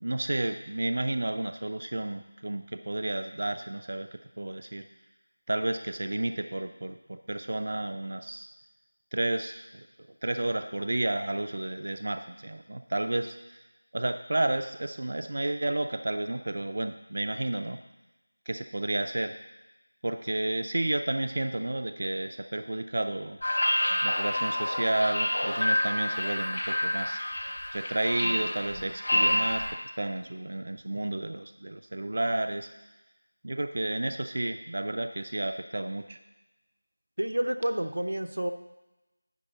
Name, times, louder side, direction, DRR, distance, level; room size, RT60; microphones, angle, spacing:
voice 1, 0.0-4.1 4.4-4.9 5.5-8.5 9.1-9.9 10.2-13.6 13.9-17.8 18.5-19.3 20.0-23.4 24.0-27.2 27.7-29.6 30.0-32.7 33.4-36.2, right 1 dB, 50° right, 7 dB, 0.4 m, -31 dB
sound 1, 23.4-29.7, left 1 dB, 65° left, 3.6 m, -28 dB
voice 2, 37.2-38.5, right 1 dB, 90° right, 7 dB, 0.7 m, -29 dB
9.9 x 4.1 x 6.8 m, 1.0 s
figure-of-eight pair, 175°, 0 cm